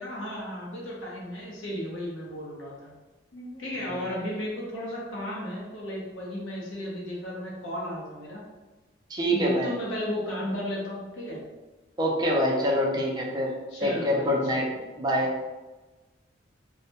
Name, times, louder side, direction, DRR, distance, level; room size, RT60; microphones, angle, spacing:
voice 1, 0.0-2.9 3.3-8.4 9.3-11.4 13.7-14.8, equal, 75° left, -4 dB, 0.7 m, -34 dB
voice 2, 9.1-9.7 12.0-13.5 13.8-14.6 15.0-15.3, equal, 20° right, -2 dB, 0.4 m, -25 dB
2.1 x 2.0 x 2.8 m, 1.2 s
head